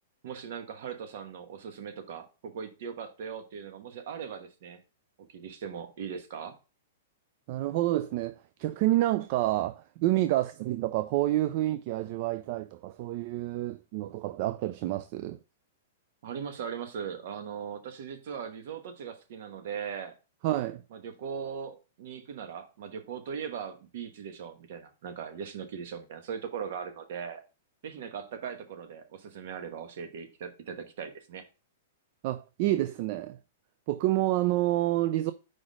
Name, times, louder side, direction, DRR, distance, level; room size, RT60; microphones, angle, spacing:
voice 1, 0.2-4.8 5.2-6.6 16.2-20.1 20.9-27.4 27.8-31.4, right 7 dB, 60° right, 1.1 m, -39 dB
voice 2, 7.5-15.4 20.4-20.8 32.2-33.4 33.9-35.3, right 15 dB, 45° right, 0.4 m, -28 dB
4.9 x 4.3 x 5.0 m
hypercardioid pair, 145°, 0 cm